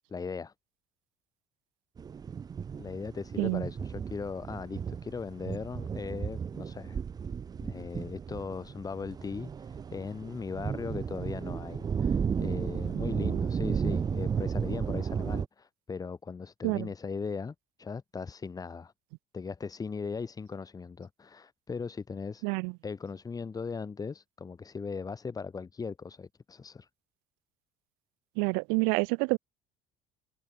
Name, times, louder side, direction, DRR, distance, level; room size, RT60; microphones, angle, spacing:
voice 1, 0.1-0.5 2.8-7.0 7.6-18.9 19.3-22.4 22.8-26.9, left 5 dB, 25° left, 2.8 m, -38 dB
sound 1, 2.0-15.5, right 7 dB, 25° right, 0.6 m, -34 dB
voice 2, 28.4-29.4, right 39 dB, 80° right, 0.4 m, -27 dB
supercardioid pair, 100°, 15 cm